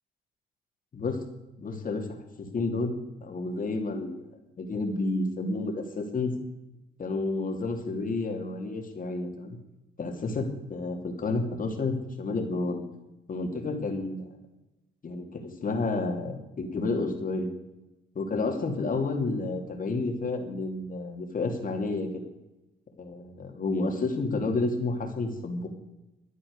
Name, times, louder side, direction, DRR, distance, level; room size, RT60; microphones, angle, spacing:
voice 1, 0.9-1.2 1.6-2.1 2.4-2.9 3.2-4.2 4.6-6.3 7.0-9.6 10.0-12.8 13.3-14.3 15.0-17.5 18.1-22.1 23.0-25.7, left 3 dB, 45° left, 4 dB, 2.9 m, -30 dB
13.5 x 9.8 x 6.7 m, 0.99 s
cardioid pair, 90°, 20 cm